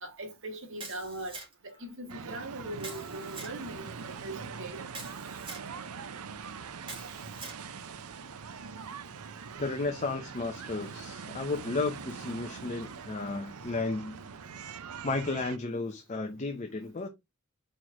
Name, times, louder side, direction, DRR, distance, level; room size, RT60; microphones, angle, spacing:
voice 1, 0.0-1.4 1.6-4.8, right 1 dB, 60° right, 1.7 m, -40 dB
Camera, 0.8-1.7 2.8-3.6 4.9-5.7 6.8-7.6, right 3 dB, 25° right, 2.4 m, -44 dB
sound 1, 2.1-15.6, right 6 dB, 80° right, 0.6 m, -43 dB
voice 2, 9.6-14.2 15.0-17.1, left 3 dB, 35° left, 0.7 m, -33 dB
4.6 x 4.5 x 4.8 m
head